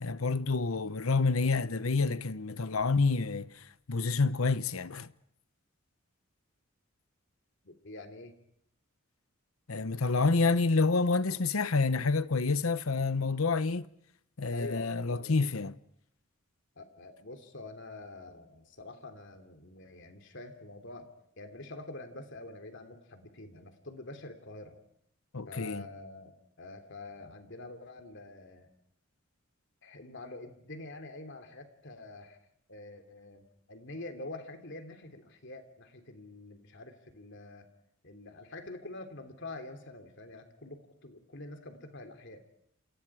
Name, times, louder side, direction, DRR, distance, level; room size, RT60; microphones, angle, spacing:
voice 1, 0.0-3.5 3.9-5.1 9.7-13.9 14.4-15.7 25.3-25.8, left 3 dB, 80° left, 1.0 m, -28 dB
voice 2, 7.6-8.3 14.5-15.4 16.8-21.1 21.4-24.8 25.5-28.7 29.8-32.4 32.7-37.7 38.0-42.5, left 2 dB, 60° left, 3.3 m, -46 dB
29.5 x 28.5 x 4.9 m
head